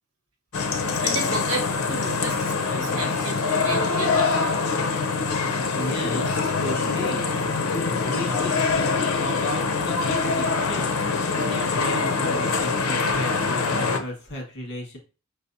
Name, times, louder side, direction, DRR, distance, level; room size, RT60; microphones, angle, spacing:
sound 1, 0.5-14.0, left 4 dB, 85° left, 0.6 m, -24 dB
voice 1, 1.0-4.3, right 3 dB, 70° right, 0 dB, 1.4 m, -33 dB
voice 2, 5.7-7.3 8.0-10.9 11.3-15.0, left 1 dB, 60° left, 0 dB, 1.7 m, -34 dB
5.2 x 3.3 x 2.7 m, 0.34 s
head